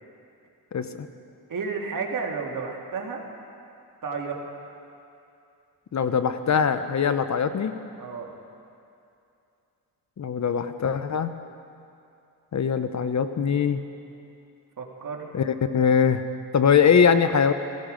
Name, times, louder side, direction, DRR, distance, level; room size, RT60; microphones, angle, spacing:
voice 1, 0.7-1.1 5.9-7.8 10.2-11.3 12.5-13.8 15.3-16.2 16.5-17.5, left 7 dB, 45° left, 10 dB, 0.8 m, -22 dB
voice 2, 1.5-3.2 4.0-4.4 8.0-8.3 14.8-15.3, right 5 dB, 55° right, 0 dB, 2.2 m, -32 dB
16.0 x 16.0 x 5.2 m, 2.6 s
cardioid pair, 85°, 39 cm